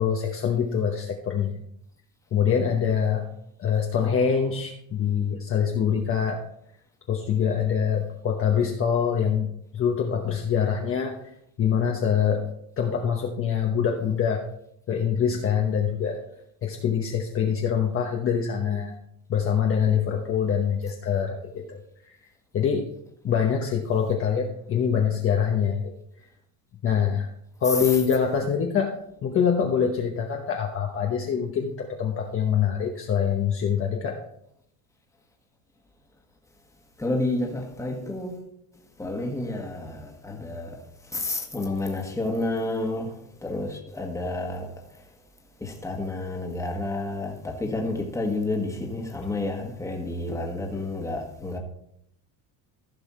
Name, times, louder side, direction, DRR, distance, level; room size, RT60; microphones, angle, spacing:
voice 1, 0.0-1.6 2.3-3.3 3.6-6.4 7.1-11.1 11.6-12.5 12.8-14.4 14.9-16.2 16.6-19.0 19.3-21.8 22.0-22.1 22.5-22.9 23.2-25.9 26.8-27.3 27.6-28.9 29.2-34.2, left 7 dB, 30° left, 1.0 m, -24 dB
voice 2, 37.0-38.4 39.0-40.8 41.1-43.1 43.4-44.7 45.6-51.6, left 2 dB, 5° left, 1.5 m, -30 dB
15.0 x 5.6 x 4.3 m
cardioid pair, 155°, 44 cm